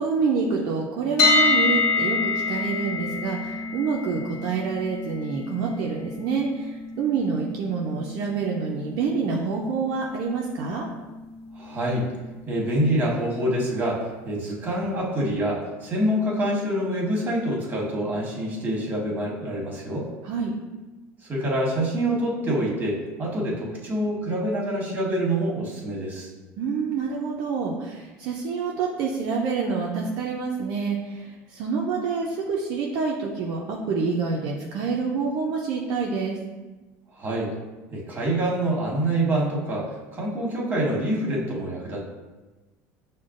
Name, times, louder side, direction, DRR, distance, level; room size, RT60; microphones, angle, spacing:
voice 1, 0.0-10.9 20.2-20.5 26.6-36.4, right 5 dB, 65° right, -2 dB, 0.5 m, -27 dB
sound 1, 1.2-13.1, left 3 dB, 60° left, 0.7 m, -28 dB
voice 2, 11.5-12.1 12.5-20.1 21.3-26.3 37.1-37.5 37.9-42.0, right 1 dB, 25° right, -3 dB, 1.3 m, -26 dB
6.1 x 2.2 x 2.5 m, 1.2 s
supercardioid pair, 100°, 7 cm